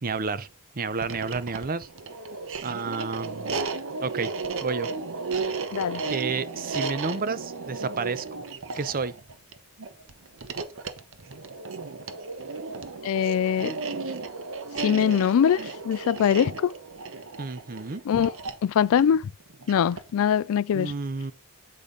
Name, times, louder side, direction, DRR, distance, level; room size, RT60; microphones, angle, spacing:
voice 1, 0.0-0.5 0.7-1.9 2.6-3.6 4.0-4.3 4.6-4.9 6.1-8.4 8.7-9.1 17.4-18.0 20.7-21.3, right 4 dB, 40° right, 0.6 m, -30 dB
sound 1, 0.9-20.2, right 4 dB, 60° right, 1.0 m, -34 dB
voice 2, 13.0-13.7 14.8-15.6 15.8-16.7 18.1-18.3 18.6-19.2 19.7-20.9, left 8 dB, 65° left, 0.3 m, -22 dB
8.6 x 5.0 x 3.9 m
head